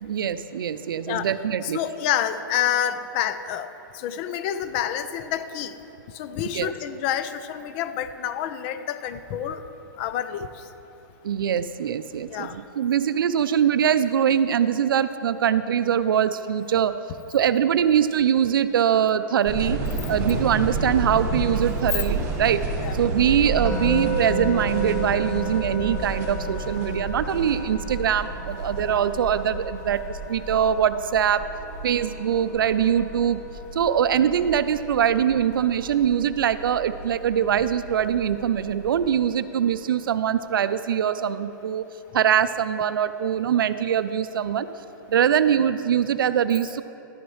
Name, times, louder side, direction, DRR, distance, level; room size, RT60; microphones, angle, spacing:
voice 1, 0.0-1.8 6.5-6.7 11.2-17.0 17.3-19.8 20.1-22.7 22.9-31.4 31.8-33.4 33.7-41.9 42.1-44.7 45.1-46.8, right 9 dB, 80° right, 13 dB, 0.5 m, -23 dB
voice 2, 1.6-5.8 6.1-9.6 10.0-10.7 12.3-12.6 22.8-23.0, left 10 dB, 35° left, 11 dB, 0.4 m, -28 dB
sound 1, 19.5-39.1, right 3 dB, 20° right, 1.3 m, -31 dB
Musical instrument, 23.6-34.8, right 1 dB, 15° left, 1.9 m, -35 dB
11.5 x 11.0 x 3.2 m, 3.0 s
hypercardioid pair, 150°, 11 cm